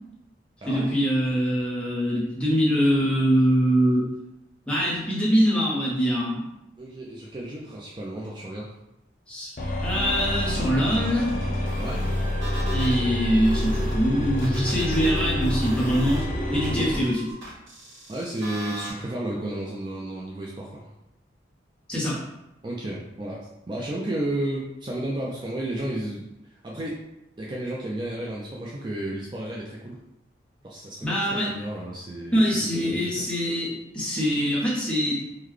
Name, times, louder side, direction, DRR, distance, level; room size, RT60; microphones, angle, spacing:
voice 1, 0.6-4.1 4.7-6.4 9.3-9.5 9.8-11.4 12.7-17.3 21.9-22.2 31.0-31.5 32.3-35.2, equal, 5° left, -7 dB, 0.8 m, -23 dB
voice 2, 6.8-8.7 11.8-12.0 18.1-20.9 22.6-26.3 26.6-27.0 27.4-30.0 30.6-33.2, right 1 dB, 25° right, -4 dB, 0.3 m, -32 dB
sound 1, 9.6-17.1, left 1 dB, 45° left, 0.5 m, -27 dB
sound 2, 10.9-13.0 13.4-18.9, equal, 85° right, 0.9 m, -39 dB
3.7 x 2.1 x 3.1 m, 0.88 s
head